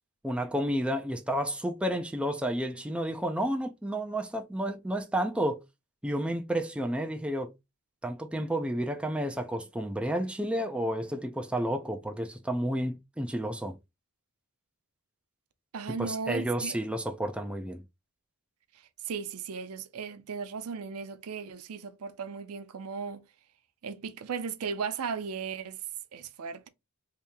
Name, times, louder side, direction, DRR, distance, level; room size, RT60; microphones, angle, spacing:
voice 1, 0.2-5.6 6.0-7.5 8.0-13.8 16.0-17.8, right 1 dB, 5° right, 0.4 m, -31 dB
voice 2, 15.7-16.8 19.0-23.2 23.8-25.8 26.1-26.7, right 6 dB, 75° right, 0.5 m, -36 dB
2.8 x 2.8 x 3.4 m
head